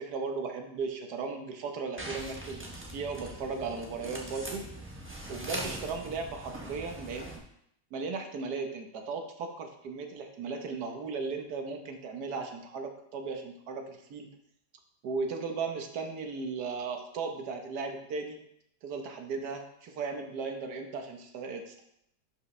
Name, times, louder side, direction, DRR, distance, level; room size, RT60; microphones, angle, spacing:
voice 1, 0.0-4.7 5.3-7.4 7.9-14.3 15.0-18.4 18.8-21.8, right 4 dB, 60° right, 4 dB, 1.4 m, -36 dB
sound 1, 2.0-7.4, right 1 dB, 10° right, 0.7 m, -41 dB
11.0 x 5.2 x 3.2 m, 0.76 s
omnidirectional pair, 2.2 m